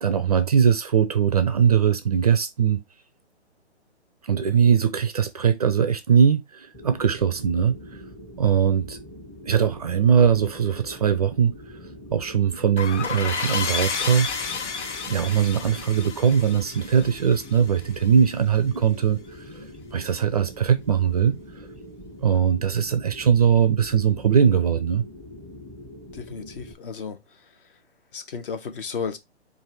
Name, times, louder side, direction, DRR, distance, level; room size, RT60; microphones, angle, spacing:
voice 1, 0.0-2.8 4.2-7.8 8.4-9.0 9.5-11.5 12.1-14.3 15.1-19.6 19.9-21.4 22.2-25.0, right 7 dB, 35° right, 0.4 m, -21 dB
sound 1, 6.7-26.7, left 1 dB, 10° left, 0.8 m, -43 dB
sound 2, 12.8-18.1, left 5 dB, 85° left, 0.6 m, -31 dB
voice 2, 26.1-27.2 28.1-29.2, left 6 dB, 50° left, 1.0 m, -33 dB
4.6 x 2.5 x 4.6 m
figure-of-eight pair, 135°, 35 cm